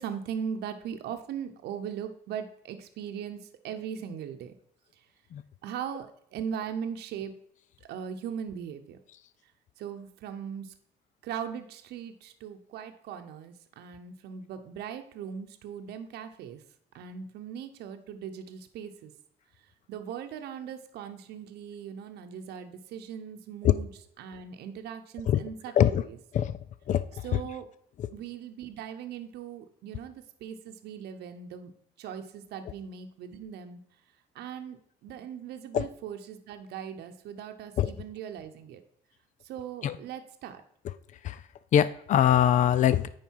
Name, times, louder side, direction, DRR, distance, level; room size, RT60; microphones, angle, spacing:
voice 1, 0.0-4.5 5.6-7.3 7.9-9.0 9.8-10.7 11.2-16.6 16.9-19.1 19.9-23.9 24.2-25.9 27.2-27.7 28.1-31.7 32.0-33.8 34.3-38.8 39.4-40.6, right 8 dB, 75° right, 7 dB, 0.9 m, -39 dB
voice 2, 26.9-27.2 28.0-28.1 35.7-35.9 37.8-37.9 39.8-40.0 41.2-41.4 41.7-43.1, left 10 dB, 45° left, 15 dB, 0.5 m, -23 dB
9.2 x 5.1 x 4.6 m, 0.67 s
cardioid pair, 110°, 17 cm